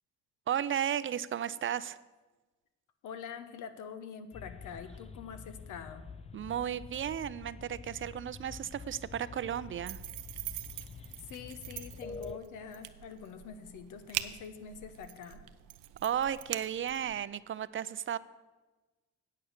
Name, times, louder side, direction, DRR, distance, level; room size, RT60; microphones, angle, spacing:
voice 1, 0.5-2.0 6.3-10.0 16.0-18.2, right 9 dB, 45° right, 17 dB, 0.4 m, -34 dB
voice 2, 3.0-6.1 11.0-15.4, left 6 dB, 85° left, 10 dB, 1.0 m, -45 dB
sound 1, 4.3-12.4, left 5 dB, 20° left, 0.4 m, -47 dB
sound 2, 9.9-17.2, right 14 dB, 85° right, 0.6 m, -43 dB
8.7 x 8.4 x 6.6 m, 1.2 s
cardioid pair, 90°, 30 cm